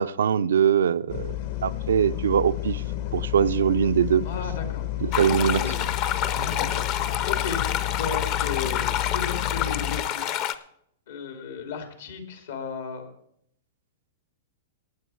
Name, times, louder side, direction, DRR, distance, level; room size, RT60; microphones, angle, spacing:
voice 1, 0.0-1.4 1.6-2.8 3.1-4.2 5.0-5.6, right 8 dB, 90° right, 13 dB, 0.4 m, -22 dB
sound 1, 1.1-10.0, left 14 dB, 60° left, 1.1 m, -31 dB
voice 2, 4.2-4.8 5.1-5.7 6.3-10.3 11.1-13.1, left 5 dB, 80° left, 5 dB, 2.7 m, -35 dB
sound 2, 5.1-10.6, left 11 dB, 40° left, 0.6 m, -28 dB
16.0 x 8.9 x 4.5 m, 0.72 s
hypercardioid pair, 145°, 0 cm